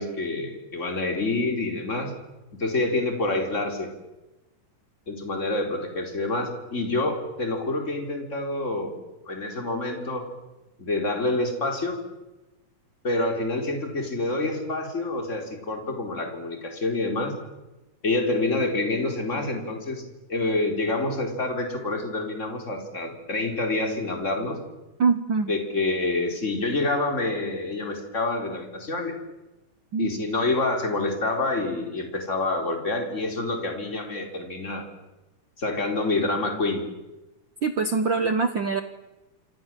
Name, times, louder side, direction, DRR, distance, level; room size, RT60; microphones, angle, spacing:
voice 1, 0.0-2.1 2.5-3.9 5.1-9.0 9.3-10.2 10.8-12.0 13.0-17.3 18.0-20.0 20.3-24.6 25.5-29.1 30.0-34.8 35.6-36.8, left 2 dB, 20° left, 4 dB, 4.3 m, -27 dB
voice 2, 25.0-25.5 29.9-30.1 37.6-38.8, right 4 dB, 65° right, 9 dB, 1.2 m, -23 dB
27.5 x 26.5 x 7.6 m, 1.0 s
omnidirectional pair, 3.9 m